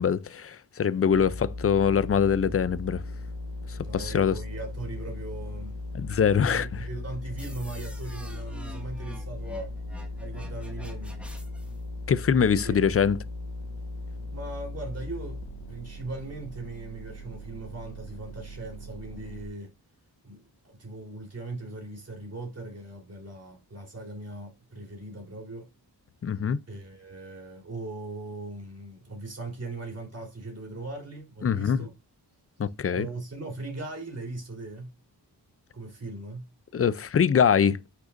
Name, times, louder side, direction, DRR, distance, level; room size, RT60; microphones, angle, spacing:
voice 1, 0.0-3.0 3.7-4.4 6.0-6.8 12.1-13.2 26.2-26.6 31.4-31.8 32.6-33.1 36.7-37.8, left 7 dB, 35° left, 0.5 m, -23 dB
sound 1, 1.1-19.5, left 2 dB, 80° left, 1.7 m, -38 dB
voice 2, 3.8-5.8 6.2-9.8 10.2-11.2 12.5-12.8 14.3-15.4 15.7-19.7 20.2-25.7 26.7-31.9 32.9-34.9 35.7-36.5, right 2 dB, 35° right, 3.7 m, -39 dB
sound 2, 7.4-11.8, right 1 dB, 5° right, 1.9 m, -47 dB
9.9 x 6.5 x 2.6 m
wide cardioid pair, 150°, 41 cm